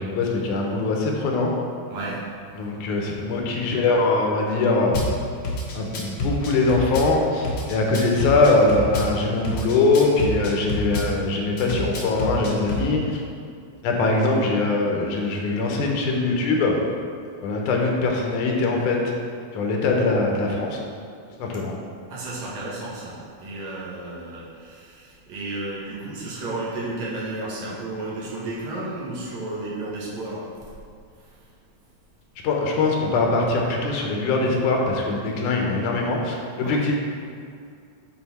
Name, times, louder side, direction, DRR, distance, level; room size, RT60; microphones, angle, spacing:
voice 1, 0.0-1.5 2.5-5.0 5.7-13.2 13.8-16.8 17.4-19.1 19.5-20.8 21.4-21.7 32.4-36.9, left 3 dB, 85° left, 0 dB, 2.4 m, -22 dB
voice 2, 1.9-2.2 22.1-30.7 31.3-31.4 36.6-36.8, right 2 dB, 70° right, -6 dB, 2.5 m, -33 dB
Drum kit / Bass drum, 4.9-5.1 5.4-7.1 7.4-9.1 9.4-11.1 11.6-12.8, left 2 dB, 70° left, 1.1 m, -27 dB
8.5 x 4.0 x 4.2 m, 2.3 s
omnidirectional pair, 3.4 m